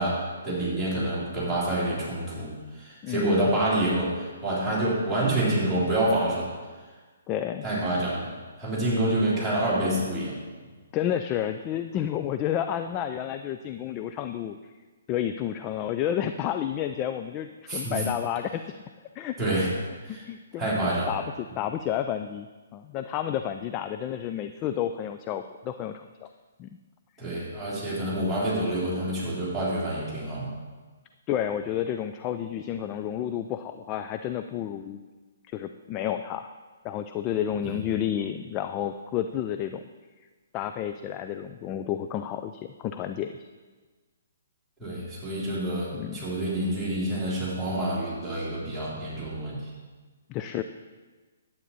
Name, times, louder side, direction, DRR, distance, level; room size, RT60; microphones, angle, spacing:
voice 1, 0.0-6.5 7.6-8.3 8.6-10.3 17.7-18.0 19.4-19.7 20.0-20.2 20.6-21.1 27.2-30.5 44.8-49.6, right 1 dB, 5° right, -10 dB, 3.1 m, -27 dB
voice 2, 3.0-3.5 7.3-7.7 10.9-14.6 15.1-18.7 19.2-19.4 20.3-20.8 21.1-22.5 22.7-26.3 26.6-26.7 31.3-35.0 35.5-36.5 36.8-39.8 40.5-43.3 45.9-46.2 50.3-50.6, left 10 dB, 25° left, 8 dB, 0.4 m, -30 dB
11.0 x 8.6 x 4.1 m, 1.3 s
figure-of-eight pair, 130°, 0 cm